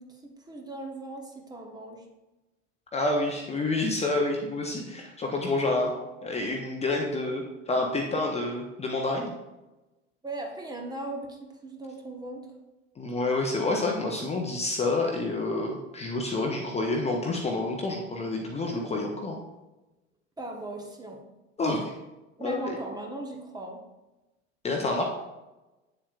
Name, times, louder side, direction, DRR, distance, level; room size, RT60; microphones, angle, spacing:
voice 1, 0.0-2.1 10.2-12.5 20.4-21.2 22.4-23.8, right 2 dB, 10° right, 2 dB, 1.0 m, -38 dB
voice 2, 2.9-5.9 6.2-9.3 13.0-19.4 21.6-21.9 22.4-22.8 24.6-25.0, left 2 dB, 15° left, 1 dB, 0.8 m, -28 dB
8.6 x 7.1 x 2.4 m, 1.0 s
figure-of-eight pair, 75°, 38 cm